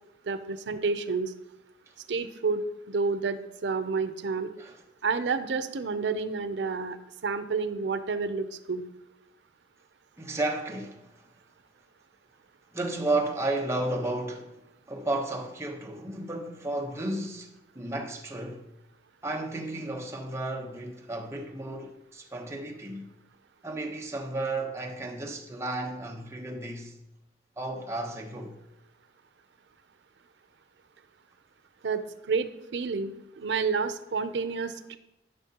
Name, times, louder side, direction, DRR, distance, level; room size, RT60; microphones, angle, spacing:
voice 1, 0.3-1.3 2.1-4.5 5.0-7.0 7.2-8.8 31.8-35.0, right 4 dB, 85° right, 0.6 m, -30 dB
voice 2, 10.2-11.1 12.7-14.6 14.9-17.5 17.7-18.7 19.2-23.1 23.6-26.9 27.6-28.6, right 2 dB, 15° right, 0.9 m, -33 dB
13.0 x 5.9 x 2.9 m
head